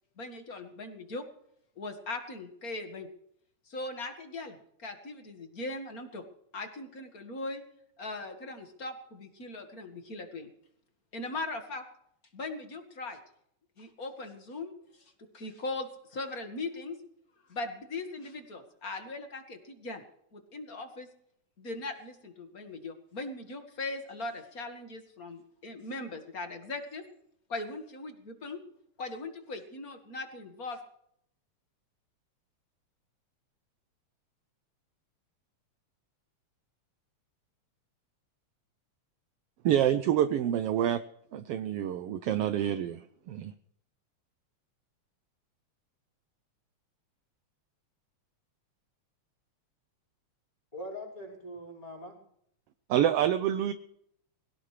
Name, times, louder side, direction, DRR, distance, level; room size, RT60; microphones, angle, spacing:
voice 1, 0.2-1.3 1.8-3.1 3.7-6.2 6.5-7.6 8.0-10.5 11.1-11.9 12.3-13.2 13.8-14.7 15.3-17.0 17.5-20.0 20.3-21.1 21.6-27.0 27.5-28.6 29.0-30.8, left 2 dB, 35° left, 6 dB, 1.8 m, -39 dB
voice 2, 39.6-41.0 41.3-43.5 52.9-53.7, right 10 dB, 70° right, 10 dB, 1.5 m, -27 dB
voice 3, 50.7-52.2, equal, 10° left, -3 dB, 5.5 m, -42 dB
22.0 x 17.5 x 3.3 m, 0.71 s
omnidirectional pair, 3.4 m